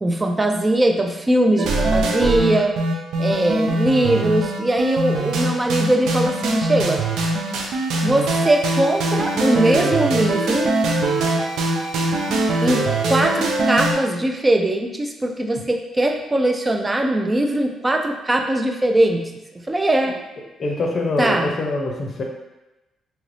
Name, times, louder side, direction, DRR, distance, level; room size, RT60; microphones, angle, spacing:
voice 1, 0.0-2.8 3.2-7.0 8.0-10.7 12.6-19.2 19.7-20.2 21.2-21.5, right 1 dB, 20° right, 4 dB, 0.4 m, -20 dB
sound 1, 1.6-13.9, right 2 dB, 80° right, 0.4 m, -22 dB
voice 2, 20.6-22.2, left 2 dB, 45° left, 1 dB, 0.6 m, -24 dB
2.8 x 2.5 x 3.2 m, 1.0 s
cardioid pair, 90°, 0 cm